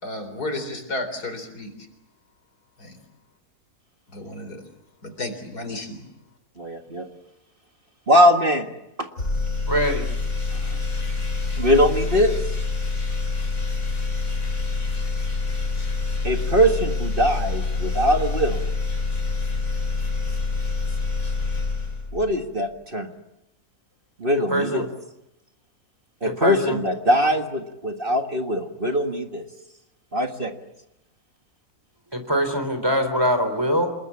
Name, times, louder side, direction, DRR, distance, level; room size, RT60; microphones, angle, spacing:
voice 1, 0.0-1.7 2.8-3.0 4.1-4.6 5.0-6.0, left 2 dB, 90° left, 8 dB, 4.6 m, -32 dB
voice 2, 6.6-7.1 8.1-8.7 9.0-9.1 11.6-12.3 16.2-18.7 22.1-23.1 24.2-24.9 26.2-29.4 30.1-30.5, equal, 35° right, 5 dB, 1.9 m, -21 dB
sound 1, 9.2-22.6, left 3 dB, 60° left, 4.4 m, -26 dB
voice 3, 9.7-10.1 24.5-24.8 26.2-26.8 32.1-33.9, equal, 15° right, 7 dB, 3.9 m, -23 dB
27.5 x 21.5 x 8.6 m, 0.88 s
omnidirectional pair, 1.6 m